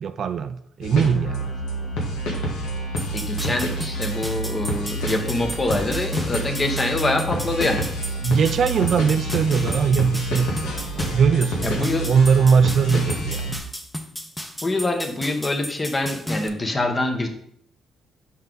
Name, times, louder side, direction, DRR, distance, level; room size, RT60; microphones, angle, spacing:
voice 1, 0.0-1.5 8.2-10.8 11.1-13.6, right 6 dB, 60° right, 11 dB, 0.4 m, -20 dB
sound 1, 0.8-13.6, right 1 dB, 90° left, 1.4 m, -28 dB
sound 2, 3.0-16.5, equal, 5° left, 0.8 m, -34 dB
voice 2, 3.1-7.9 11.6-12.1 14.6-17.3, left 2 dB, 25° left, 4 dB, 1.0 m, -25 dB
5.6 x 4.6 x 3.9 m, 0.69 s
cardioid pair, 90°, 0 cm